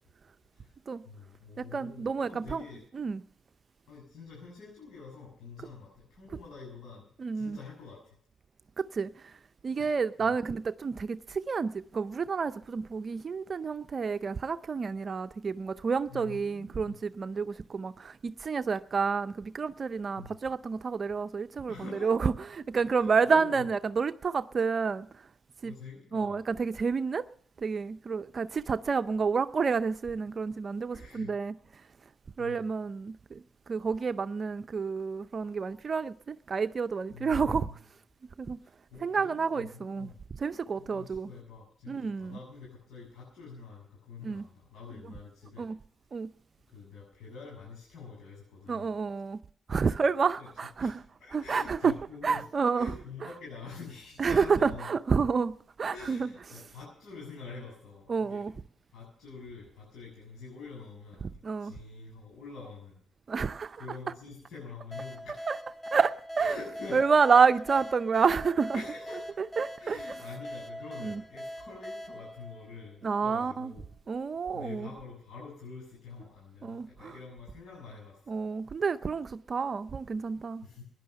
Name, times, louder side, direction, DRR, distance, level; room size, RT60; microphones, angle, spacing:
voice 1, 1.0-2.8 3.9-7.1 7.3-8.1 9.8-9.9 10.2-10.3 16.1-16.9 20.2-20.3 21.7-22.1 22.8-23.6 25.6-26.4 30.9-31.3 32.4-32.7 37.1-37.7 38.6-40.2 40.7-45.7 46.7-48.9 50.4-50.5 50.8-50.9 51.2-52.5 52.7-54.9 55.9-58.6 58.9-63.0 63.8-65.5 66.4-67.0 68.7-69.2 69.8-73.9 74.5-78.2 80.6-80.8, left 4 dB, 70° left, 6.8 m, -46 dB
voice 2, 1.6-2.6 2.9-3.2 7.2-7.6 8.8-9.3 9.6-21.7 22.0-25.1 25.6-25.7 26.1-27.2 27.6-31.5 32.4-37.7 38.4-38.6 39.0-41.3 41.9-42.3 44.2-44.4 45.6-45.8 46.1-46.3 48.7-49.4 49.7-51.0 51.3-51.9 52.2-52.9 54.2-56.3 58.1-58.5 61.4-61.7 63.3-63.8 65.5-65.6 65.9-66.6 66.9-68.8 69.4-70.0 71.0-71.2 73.0-73.7 74.1-74.9 76.6-77.1 78.3-80.6, right 5 dB, 45° right, 0.5 m, -29 dB
sound 1, 64.9-73.4, equal, 15° left, 4.2 m, -42 dB
16.5 x 10.5 x 6.7 m
cardioid pair, 70°, 0 cm